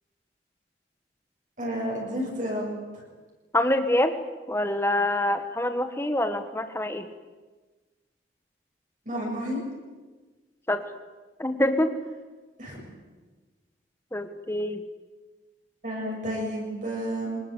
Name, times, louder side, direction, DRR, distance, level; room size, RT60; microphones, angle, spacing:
voice 1, 1.6-2.7 2.9-3.0 9.1-9.6 12.6-12.8 15.8-17.4, equal, 45° right, -2 dB, 7.0 m, -31 dB
voice 2, 3.5-4.1 4.5-7.0 10.7-10.8 11.4-11.9 14.1-14.8, left 1 dB, 15° left, 8 dB, 1.4 m, -25 dB
25.0 x 20.5 x 8.2 m, 1.3 s
head